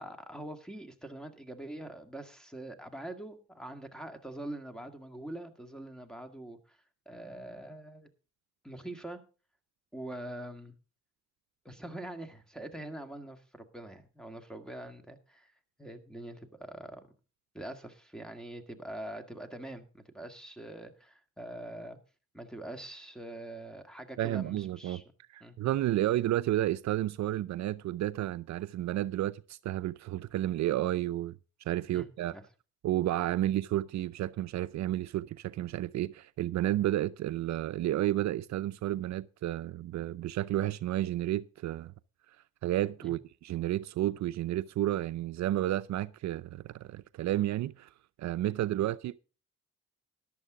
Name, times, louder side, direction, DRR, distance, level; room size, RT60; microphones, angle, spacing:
voice 1, 0.0-6.8 7.1-8.1 8.6-9.2 9.9-10.7 11.7-15.5 15.8-17.1 17.5-22.0 22.3-25.0 25.4-25.6 31.9-32.4 33.4-33.5 43.0-43.1 48.8-48.9, right 1 dB, ahead, 1.9 m, -44 dB
voice 2, 24.2-25.0 25.3-31.4 31.7-32.4 32.8-41.9 42.6-47.9 48.2-49.2, right 14 dB, 65° right, 0.5 m, -31 dB
14.0 x 11.0 x 3.7 m
cardioid pair, 90°, 30 cm